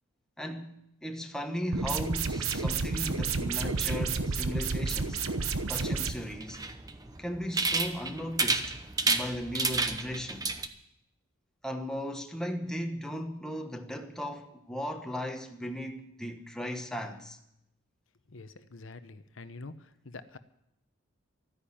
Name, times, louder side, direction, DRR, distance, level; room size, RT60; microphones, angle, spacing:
voice 1, 0.4-5.2 5.7-6.7 7.2-8.8 9.0-10.5 11.6-17.4, equal, 5° left, 1.1 m, -37 dB
sound 1, 1.7-6.1, right 4 dB, 80° right, 1.0 m, -30 dB
sound 2, 2.2-10.7, right 3 dB, 15° right, 0.8 m, -33 dB
voice 2, 18.3-20.4, left 3 dB, 70° left, 0.8 m, -46 dB
13.5 x 10.0 x 8.6 m
head